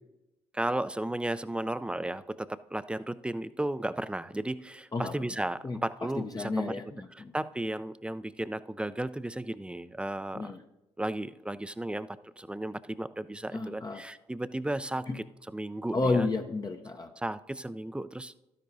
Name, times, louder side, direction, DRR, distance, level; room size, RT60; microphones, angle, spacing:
voice 1, 0.5-6.8 7.1-10.5 11.0-15.2 15.5-16.3 17.2-18.3, right 1 dB, 5° right, 14 dB, 0.4 m, -34 dB
voice 2, 6.2-7.3 10.3-10.6 13.5-14.0 15.1-15.2 15.9-17.1, left 3 dB, 25° left, 4 dB, 0.7 m, -31 dB
12.5 x 10.0 x 2.7 m, 0.97 s
hypercardioid pair, 50°, 14 cm